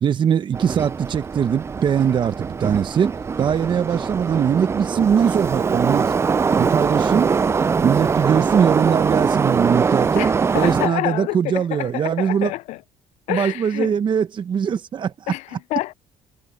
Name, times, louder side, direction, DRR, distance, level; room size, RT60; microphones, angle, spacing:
voice 1, 0.0-6.1 6.6-7.4 7.8-12.5 13.3-15.3, right 8 dB, 45° right, 0.9 m, -21 dB
Subway metro underground, 0.5-10.9, right 5 dB, 25° right, 0.3 m, -22 dB
voice 2, 10.2-12.8 13.3-13.9 15.3-15.9, left 18 dB, 80° left, 0.5 m, -27 dB
cardioid pair, 105°, 12 cm